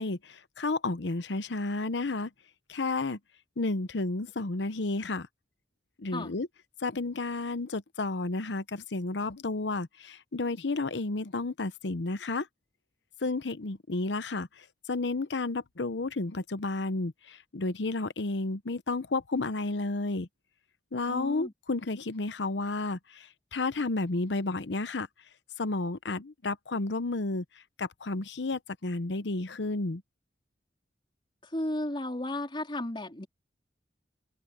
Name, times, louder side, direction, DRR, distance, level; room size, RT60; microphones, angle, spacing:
voice 1, 0.0-2.3 2.7-3.2 3.6-5.3 6.0-6.5 6.8-12.5 13.2-20.3 20.9-25.1 25.6-27.4 27.8-30.0, left 3 dB, 90° left, 0.9 m, -32 dB
voice 2, 21.1-21.5 31.4-33.3, left 1 dB, 30° left, 3.7 m, -34 dB
head